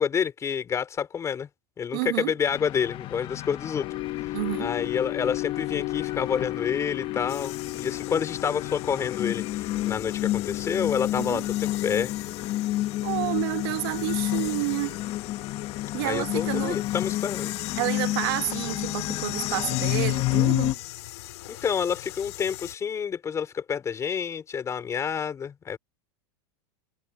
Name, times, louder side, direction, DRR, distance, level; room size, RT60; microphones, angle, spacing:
voice 1, 0.0-1.5 1.8-3.9 4.2-12.1 16.0-17.5 21.5-25.8, left 7 dB, 20° left, 4.7 m, -29 dB
voice 2, 1.9-2.3 4.3-4.7 11.2-11.4 13.0-15.0 15.9-16.8 17.8-20.7, right 22 dB, 60° right, 1.1 m, -29 dB
sound 1, 2.5-20.7, left 16 dB, 40° left, 0.9 m, -30 dB
sound 2, 7.3-22.7, left 17 dB, 75° left, 2.8 m, -39 dB
supercardioid pair, 140°, 14 cm